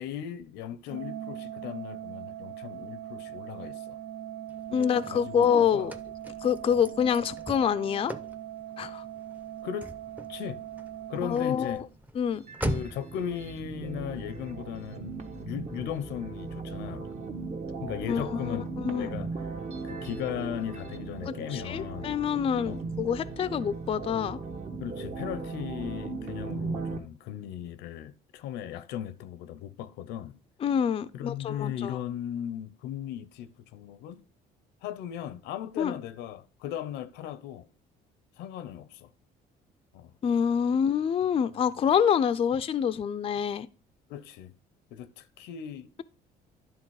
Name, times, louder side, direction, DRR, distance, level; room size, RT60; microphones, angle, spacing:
voice 1, 0.0-4.0 4.7-5.9 6.7-6.8 9.6-9.9 10.3-10.6 11.1-11.9 12.6-17.1 17.8-19.3 19.8-22.2 22.6-22.8 24.8-30.4 31.1-34.2 34.8-37.7 38.4-39.1 39.9-40.1 44.1-44.5 44.9-46.0, left 10 dB, 90° left, 0.7 m, -37 dB
Organ, 0.9-11.9, right 12 dB, 60° right, 0.7 m, -41 dB
Car / Slam, 4.5-13.2, right 1 dB, 10° right, 0.7 m, -40 dB
voice 2, 4.7-5.9 6.4-8.1 8.8-9.0 11.2-11.9 12.2-12.4 18.1-19.1 21.3-24.4 30.6-32.0 35.8-35.9 40.2-43.7, left 8 dB, 35° left, 0.4 m, -26 dB
sound 1, 12.3-27.0, right 4 dB, 40° right, 1.3 m, -37 dB
10.5 x 3.8 x 4.7 m
cardioid pair, 110°, 17 cm